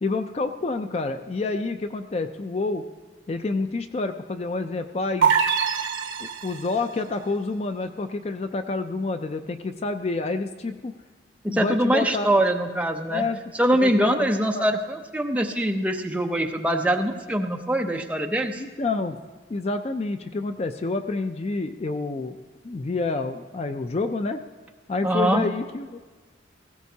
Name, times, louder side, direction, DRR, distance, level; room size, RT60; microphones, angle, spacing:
voice 1, 0.0-2.8 3.3-5.4 6.2-10.9 11.5-12.4 13.1-13.4 13.7-14.6 18.5-19.2 19.5-22.4 22.6-24.4 24.9-26.0, left 3 dB, 35° left, 8 dB, 0.4 m, -28 dB
sound 1, 5.2-6.8, right 6 dB, 80° right, 0.8 m, -23 dB
voice 2, 11.4-13.2 13.5-18.6 25.0-25.5, right 1 dB, 5° right, 3 dB, 0.6 m, -23 dB
18.0 x 15.5 x 2.8 m, 1.3 s
head